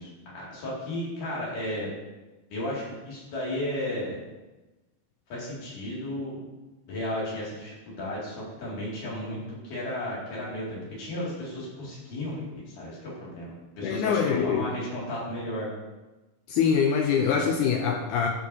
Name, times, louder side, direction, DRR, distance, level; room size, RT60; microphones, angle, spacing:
voice 1, 0.0-1.9 2.5-4.2 5.3-6.4 6.9-9.4 9.6-15.7, left 1 dB, 65° left, -6 dB, 3.9 m, -34 dB
voice 2, 13.8-14.7 16.5-18.3, left 6 dB, 85° left, 3 dB, 1.8 m, -24 dB
12.5 x 5.5 x 2.7 m, 1.1 s
omnidirectional pair, 4.0 m